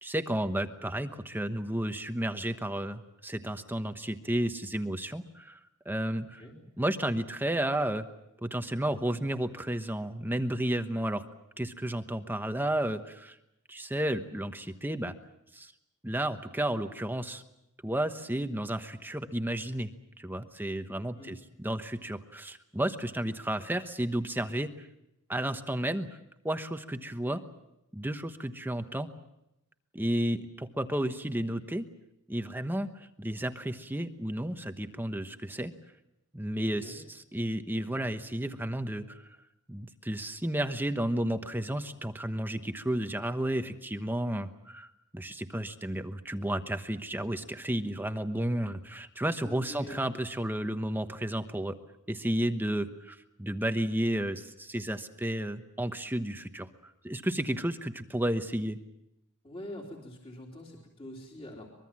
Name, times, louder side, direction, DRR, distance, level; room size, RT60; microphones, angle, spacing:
voice 1, 0.0-5.6 5.8-6.4 6.8-8.1 8.4-11.2 11.6-13.4 13.7-15.2 15.5-15.7 16.0-17.4 17.8-19.9 20.2-24.9 25.3-26.1 26.4-27.4 27.9-29.1 29.9-31.9 32.3-32.9 33.2-35.7 36.3-39.3 39.7-51.8 52.1-58.8, right 1 dB, 10° right, 8 dB, 1.1 m, -32 dB
voice 2, 6.2-6.6 21.2-21.4 36.6-37.0 49.4-50.0 59.4-61.7, left 1 dB, 25° left, -1 dB, 3.4 m, -45 dB
24.0 x 22.5 x 7.5 m, 0.85 s
head